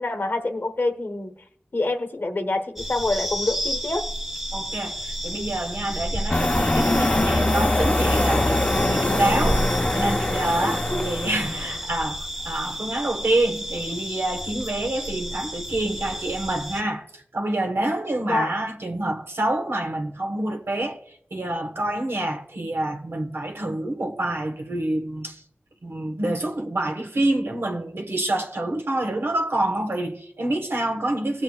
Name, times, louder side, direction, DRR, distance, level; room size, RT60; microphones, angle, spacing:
voice 1, 0.0-1.3 1.7-4.1 10.6-11.1 18.3-18.5, left 2 dB, 60° left, 0.9 m, -26 dB
sound 1, 2.8-16.8, equal, 10° right, 1.1 m, -31 dB
voice 2, 4.5-25.4 25.8-31.4, right 1 dB, 80° right, 1.2 m, -27 dB
sound 2, 6.3-11.8, left 1 dB, 35° left, 0.6 m, -23 dB
18.5 x 7.7 x 2.4 m
wide cardioid pair, 55°, 4 cm